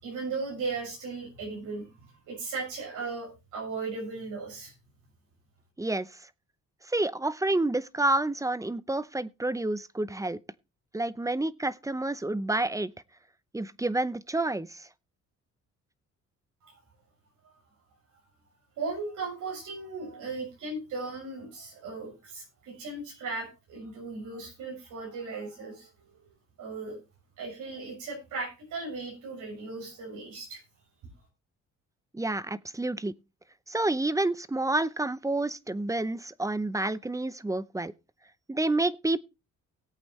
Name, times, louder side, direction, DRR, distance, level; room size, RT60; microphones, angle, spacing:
voice 1, 0.0-4.7 16.6-16.7 18.8-26.3 26.6-27.0 27.4-30.6, right 3 dB, 80° right, 6.6 m, -37 dB
voice 2, 6.9-10.4 10.9-12.9 13.5-14.9 32.1-33.1 33.7-37.9 38.5-39.2, right 2 dB, 10° right, 0.6 m, -29 dB
18.5 x 8.4 x 3.2 m
cardioid pair, 90°, 30 cm